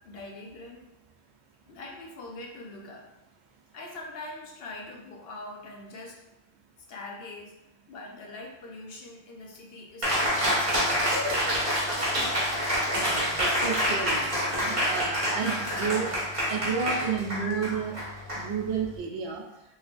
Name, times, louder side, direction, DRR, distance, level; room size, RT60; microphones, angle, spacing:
voice 1, 0.0-0.9 1.7-3.1 3.7-6.2 6.9-7.6 7.9-10.7 16.5-16.7, left 2 dB, 70° left, 0 dB, 0.8 m, -43 dB
Cheering, 10.0-19.0, equal, 35° right, 0.8 m, -27 dB
voice 2, 12.9-16.1 16.5-18.0 18.4-19.4, right 6 dB, 90° right, 1 dB, 0.9 m, -31 dB
3.2 x 2.9 x 2.5 m, 0.92 s
omnidirectional pair, 1.1 m